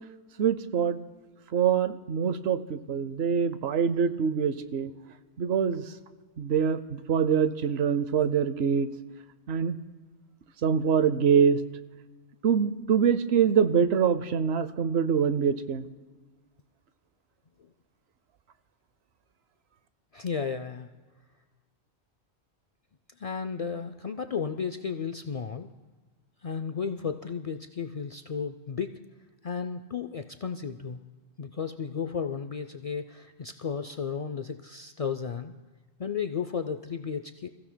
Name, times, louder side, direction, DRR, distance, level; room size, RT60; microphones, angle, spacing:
voice 1, 0.4-1.0 1.5-4.9 5.4-5.8 6.4-8.9 9.5-9.8 10.6-11.6 12.4-15.8, right 7 dB, 75° right, 13 dB, 0.9 m, -24 dB
voice 2, 20.1-20.9 23.2-25.7 26.4-29.0 29.4-31.0 31.4-35.6 36.0-37.5, left 6 dB, 55° left, 7 dB, 0.4 m, -33 dB
27.0 x 15.0 x 2.2 m, 1.3 s
omnidirectional pair, 1.1 m